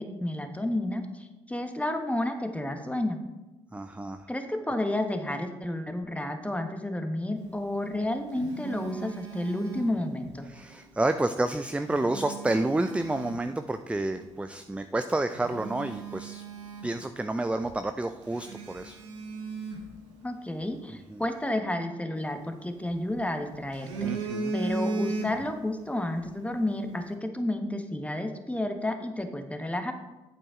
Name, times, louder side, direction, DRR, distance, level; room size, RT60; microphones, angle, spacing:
voice 1, 0.0-3.2 4.3-10.5 20.2-29.9, left 1 dB, 10° left, 6 dB, 1.3 m, -31 dB
voice 2, 3.7-4.3 10.5-16.4 16.8-19.0 21.1-21.2 24.0-24.5, right 2 dB, 10° right, 9 dB, 0.5 m, -30 dB
Telephone, 7.8-10.4 11.6-13.5 14.1-14.3 14.9-15.0 15.3-17.4 17.6-17.8 18.3-20.6 22.2-23.2 23.5-25.7 26.0-26.2, right 3 dB, 85° right, 1.1 m, -36 dB
8.7 x 7.7 x 3.7 m, 1.1 s
hypercardioid pair, 45°, 15 cm